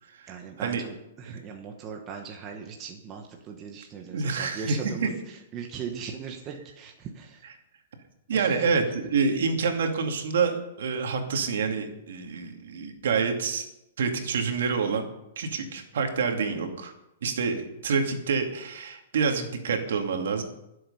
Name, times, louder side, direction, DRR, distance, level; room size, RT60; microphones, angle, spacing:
voice 1, 0.3-7.5 8.3-8.7, right 6 dB, 15° right, 2 dB, 1.0 m, -39 dB
voice 2, 4.1-5.1 8.3-13.7 14.0-15.1 15.4-16.9 17.2-20.4, right 5 dB, 60° right, 4 dB, 2.4 m, -27 dB
23.0 x 7.8 x 5.6 m, 0.87 s
hypercardioid pair, 180°, 0 cm